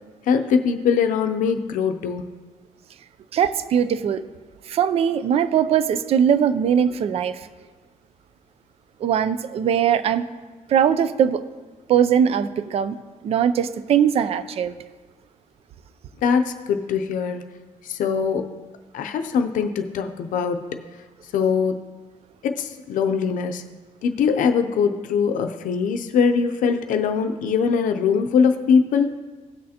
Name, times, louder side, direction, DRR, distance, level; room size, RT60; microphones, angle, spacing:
voice 1, 0.3-2.3 16.2-17.4 17.8-18.5 18.9-20.7 21.3-21.8 22.4-23.6 24.0-29.2, left 6 dB, 80° left, 7 dB, 0.5 m, -22 dB
voice 2, 3.3-4.2 4.7-7.5 9.0-10.3 10.7-11.4 11.9-13.0 13.2-14.7, right 8 dB, 50° right, 13 dB, 0.4 m, -20 dB
17.0 x 6.3 x 2.9 m, 1.4 s
cardioid pair, 175°, 13 cm